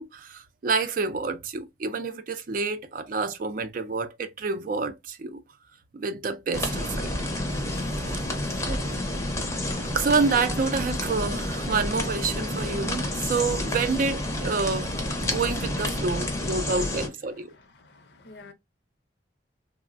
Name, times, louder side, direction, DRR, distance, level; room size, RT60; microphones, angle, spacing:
voice 1, 0.0-5.4 5.9-7.1 8.7-8.9 9.9-17.5, right 4 dB, 45° right, 0.4 m, -28 dB
sound 1, 6.5-17.1, left 1 dB, 15° left, 0.6 m, -29 dB
voice 2, 17.3-18.5, left 3 dB, 60° left, 0.6 m, -51 dB
3.2 x 2.0 x 2.4 m
head